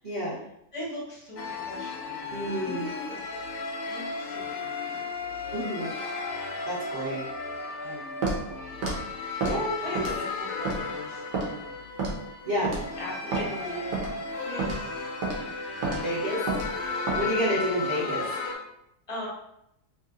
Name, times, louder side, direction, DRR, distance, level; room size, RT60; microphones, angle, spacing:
voice 1, 0.0-0.4 2.3-2.9 5.5-5.9 6.7-7.3 9.4-10.0 12.4-12.7 16.0-16.4 17.1-18.2, equal, 45° right, -11 dB, 1.2 m, -29 dB
voice 2, 0.7-3.4 3.9-5.1 7.1-7.3 7.8-8.8 9.8-11.9 12.5-13.9 14.4-15.1 15.8-16.2 19.1-19.3, left 1 dB, 30° left, -6 dB, 0.6 m, -40 dB
sound 1, 1.4-18.5, left 4 dB, 85° left, 1.2 m, -35 dB
Walk footsteps, 8.2-8.4 8.8-9.0 9.4-9.6 10.0-10.3 10.7-10.8 11.3-11.5 12.0-12.2 12.6-12.8 13.3-13.5 13.9-14.1 14.6-14.8 15.2-15.4 15.8-16.0 16.5-16.7 17.1-17.2, right 3 dB, 85° right, 1.4 m, -29 dB
3.2 x 3.0 x 2.4 m, 0.79 s
omnidirectional pair, 1.8 m